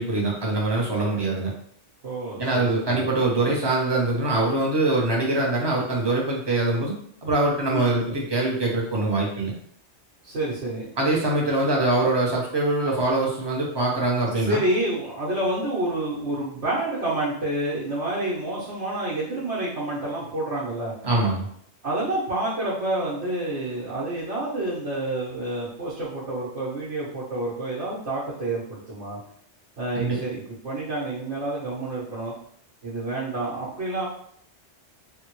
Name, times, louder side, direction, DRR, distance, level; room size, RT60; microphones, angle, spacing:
voice 1, 0.0-1.5 2.4-7.0 7.2-9.5 11.0-14.6 21.0-21.5 29.9-30.2, right 2 dB, 30° right, -3 dB, 0.6 m, -23 dB
voice 2, 2.0-3.0 7.7-7.9 10.2-10.9 14.4-20.9 21.8-29.2 29.8-32.3 32.8-34.1, right 1 dB, 75° right, -9 dB, 1.2 m, -28 dB
3.4 x 2.1 x 3.0 m, 0.66 s
omnidirectional pair, 1.2 m